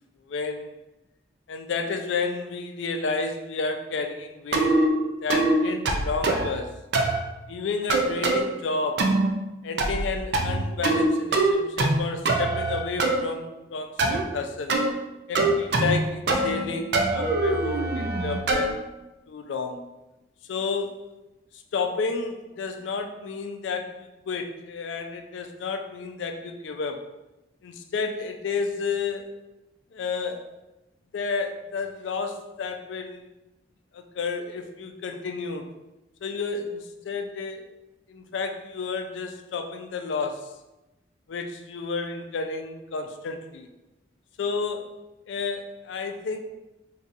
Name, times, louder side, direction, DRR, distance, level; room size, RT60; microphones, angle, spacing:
voice 1, 0.3-0.7 1.5-4.8 5.2-6.8 7.5-9.1 9.6-14.8 15.3-18.7 19.3-19.9 20.5-21.0 21.5-27.1 27.6-29.3 29.9-30.5 31.1-33.2 33.9-35.7 36.2-37.7 38.1-40.6 41.3-43.7 44.4-44.9 45.3-46.4, left 4 dB, 90° left, 6 dB, 0.4 m, -31 dB
sound 1, 4.5-4.9 5.3-5.5 5.8-6.5 6.9-7.2 7.9-8.4 9.0-9.3 9.8-10.1 10.3-11.0 11.3-12.0 12.2-13.2 14.0-14.2 14.7-14.9 15.3-16.0 16.3-16.6 16.9-18.7, right 2 dB, 65° right, 0.4 m, -23 dB
3.9 x 2.7 x 2.4 m, 0.99 s
head